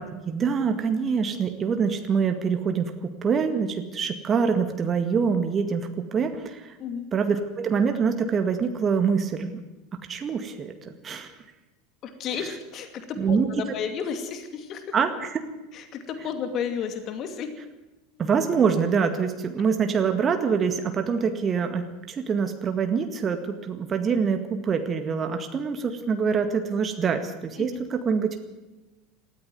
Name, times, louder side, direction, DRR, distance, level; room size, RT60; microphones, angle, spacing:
voice 1, 0.3-6.7 7.1-9.6 10.1-11.3 13.2-13.5 14.9-15.4 18.2-28.4, right 6 dB, 30° right, 7 dB, 1.9 m, -25 dB
voice 2, 12.0-14.9 15.7-17.5 27.6-27.8, left 7 dB, 40° left, 8 dB, 2.6 m, -32 dB
19.0 x 14.5 x 9.4 m, 1.1 s
figure-of-eight pair, 75°, 0 cm